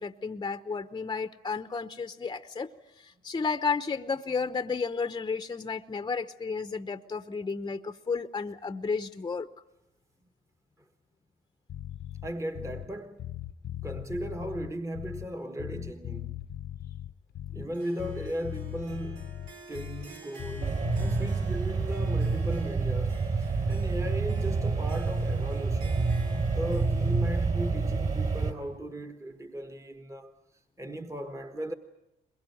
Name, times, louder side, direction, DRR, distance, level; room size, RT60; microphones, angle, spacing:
voice 1, 0.0-2.7 3.0-9.5, left 5 dB, 20° left, 0.9 m, -32 dB
Bass guitar, 11.7-12.9 13.2-15.3 15.6-17.7 18.0-20.1 20.4-21.3, left 12 dB, 60° left, 0.9 m, -39 dB
voice 2, 12.2-13.2 13.8-16.4 17.5-23.3 23.6-26.2 26.5-30.3 30.8-31.7, right 1 dB, 15° right, 1.3 m, -37 dB
Harp, 17.7-29.0, right 3 dB, 85° right, 3.6 m, -52 dB
sound 1, 20.6-28.5, right 4 dB, 40° right, 3.5 m, -28 dB
23.0 x 21.5 x 9.2 m
cardioid pair, 90°, 20 cm